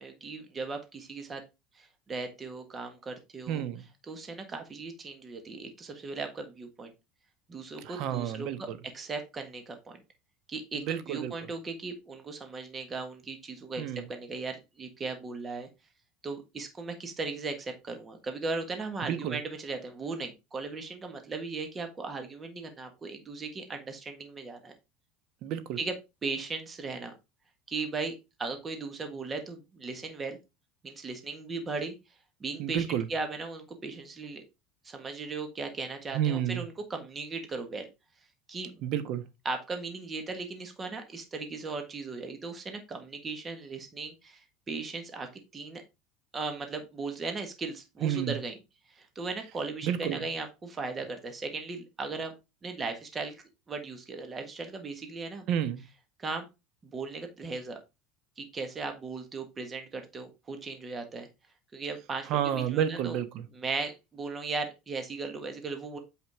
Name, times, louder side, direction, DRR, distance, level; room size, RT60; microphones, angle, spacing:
voice 1, 0.0-1.4 1.7-3.6 4.1-6.9 7.5-8.7 8.9-10.0 10.5-13.8 14.1-15.7 16.2-24.7 25.8-25.9 26.2-27.1 27.7-30.4 30.8-31.9 32.4-34.4 34.8-37.9 38.5-38.7 39.4-45.8 46.3-48.6 48.9-52.3 52.6-55.5 56.2-56.5 56.8-57.8 58.4-61.3 61.7-63.2 63.5-66.0, right 4 dB, 20° right, 1.6 m, -37 dB
voice 2, 3.5-3.8 7.8-8.8 10.7-11.3 13.8-14.0 19.0-19.4 25.4-25.8 32.6-33.0 36.1-36.6 38.8-39.2 48.0-48.3 49.8-50.2 55.5-55.8 62.3-63.4, right 10 dB, 55° right, 1.2 m, -30 dB
8.2 x 5.1 x 3.6 m
supercardioid pair, 135°, 0 cm